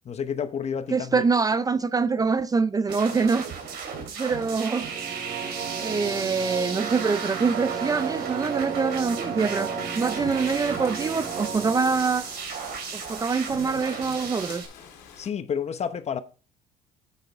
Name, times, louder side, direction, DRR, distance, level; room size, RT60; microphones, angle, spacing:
voice 1, 0.0-1.3 15.2-16.2, left 7 dB, 40° left, 0.9 m, -30 dB
voice 2, 0.9-3.5 4.2-4.9 5.8-12.3 12.9-14.6, right 4 dB, 20° right, 0.4 m, -25 dB
sound 1, 2.9-14.7, right 6 dB, 70° right, 3.3 m, -35 dB
sound 2, 4.6-12.4, right 6 dB, 90° right, 3.5 m, -35 dB
Rain, 10.0-15.3, left 7 dB, 85° left, 2.6 m, -46 dB
10.0 x 8.2 x 3.5 m
cardioid pair, 110°, 17 cm